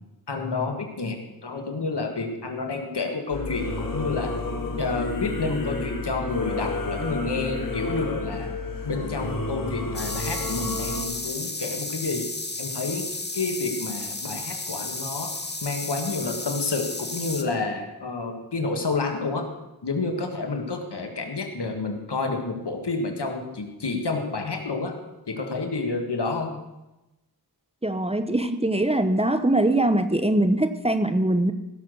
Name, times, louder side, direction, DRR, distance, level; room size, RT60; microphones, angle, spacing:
voice 1, 0.3-1.2 1.4-4.3 4.8-8.5 8.8-12.2 12.6-13.1 13.3-15.3 15.6-19.5 19.8-25.0 25.3-26.6, left 3 dB, 85° left, 4 dB, 1.7 m, -29 dB
Singing / Musical instrument, 3.3-11.0, left 2 dB, 55° left, 2.0 m, -31 dB
sound 1, 9.9-17.4, left 2 dB, 25° left, 1.2 m, -33 dB
voice 2, 27.8-31.5, right 1 dB, 15° right, 10 dB, 0.8 m, -22 dB
16.5 x 6.8 x 6.4 m, 0.99 s
wide cardioid pair, 50°, 39 cm